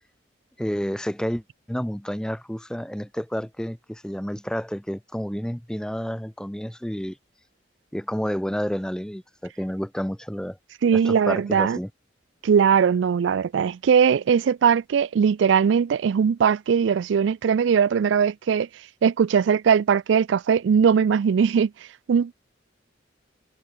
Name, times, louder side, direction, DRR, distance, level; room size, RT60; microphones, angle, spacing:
voice 1, 0.6-7.2 7.9-10.6 10.9-11.9, equal, 5° left, 0.7 m, -30 dB
voice 2, 10.8-11.8 12.4-18.7 19.0-21.7 22.1-22.3, right 7 dB, 70° right, 0.3 m, -20 dB
head